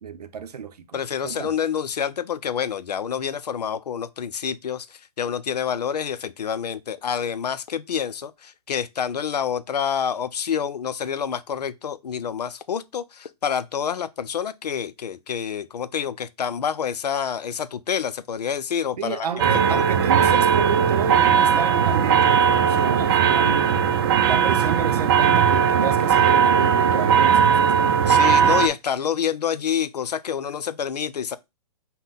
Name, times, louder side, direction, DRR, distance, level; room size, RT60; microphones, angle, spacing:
voice 1, 0.0-1.5 19.0-23.8 24.2-28.0, right 7 dB, 80° right, 0.7 m, -30 dB
voice 2, 0.9-19.3 19.7-19.9 28.1-31.4, left 8 dB, 85° left, 0.5 m, -27 dB
sound 1, 19.4-28.7, right 7 dB, 40° right, 0.5 m, -18 dB
5.4 x 2.2 x 3.8 m
hypercardioid pair, 135°, 20 cm